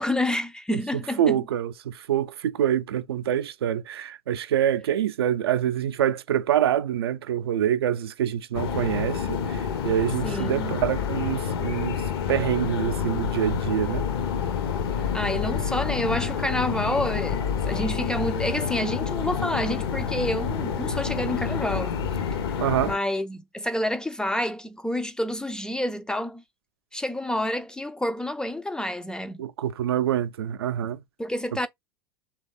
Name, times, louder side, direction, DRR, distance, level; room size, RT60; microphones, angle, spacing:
voice 1, 0.0-1.4 10.2-10.8 15.1-22.0 22.8-26.4 26.9-29.4 31.2-31.7, left 1 dB, 5° left, 0.3 m, -28 dB
voice 2, 0.7-12.0 12.3-14.0 22.6-22.9 29.4-31.0, right 10 dB, 65° right, 0.4 m, -26 dB
sound 1, 8.5-23.0, left 7 dB, 65° left, 0.7 m, -28 dB
3.1 x 2.3 x 3.8 m
figure-of-eight pair, 80°, 14 cm